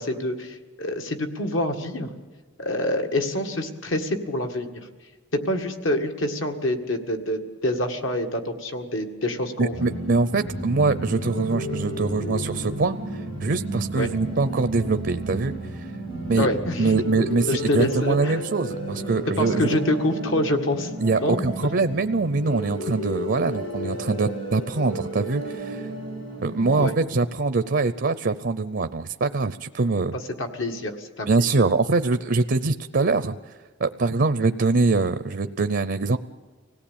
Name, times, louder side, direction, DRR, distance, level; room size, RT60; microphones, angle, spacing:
voice 1, 0.0-2.1 2.6-4.8 5.5-9.9 14.0-14.1 16.4-16.9 17.5-18.4 19.4-20.9 21.2-21.4 26.8-26.9 30.1-31.6, left 1 dB, 70° left, 4 dB, 2.0 m, -26 dB
voice 2, 9.6-15.9 16.3-16.5 16.8-19.8 21.0-25.9 26.4-30.2 31.3-33.5 33.8-36.2, right 3 dB, 55° right, 12 dB, 0.6 m, -23 dB
sound 1, 9.7-26.9, right 1 dB, 90° left, 7.4 m, -32 dB
25.0 x 17.5 x 8.7 m, 1.3 s
head